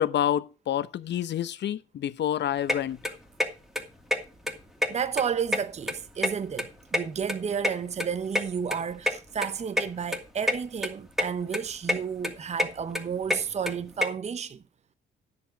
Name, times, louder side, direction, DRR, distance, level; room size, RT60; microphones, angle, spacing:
voice 1, 0.0-3.1, left 10 dB, 60° left, 0.8 m, -28 dB
sound 1, 2.7-2.8 3.0-3.5 3.8-3.9 4.1-4.2 4.4-5.2 5.5-6.7 6.9-8.4 8.7-8.8 9.1-9.2 9.4-9.5 9.8-9.9 10.1-10.6 10.8-11.3 11.5-12.0 12.2-14.1, left 1 dB, ahead, 2.3 m, -26 dB
voice 2, 4.9-14.6, right 7 dB, 35° right, 0.7 m, -32 dB
10.0 x 7.8 x 5.1 m
cardioid pair, 90°, 20 cm